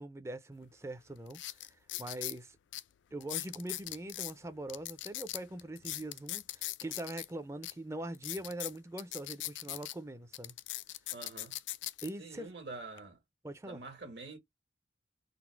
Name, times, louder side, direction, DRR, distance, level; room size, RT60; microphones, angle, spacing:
voice 1, 0.0-1.7 2.0-2.6 3.1-10.6 12.0-12.5 13.4-13.8, right 1 dB, 15° right, 0.4 m, -42 dB
sound 1, 0.6-0.7 1.3-2.4 2.7-2.8 3.2-4.3 4.7-7.3 7.6-7.7 8.1-9.9 10.3-12.1 12.7-13.0, left 16 dB, 85° left, 0.4 m, -40 dB
voice 2, 11.1-11.5 12.2-13.2 13.6-14.4, right 3 dB, 70° right, 1.6 m, -46 dB
4.0 x 2.1 x 4.5 m
head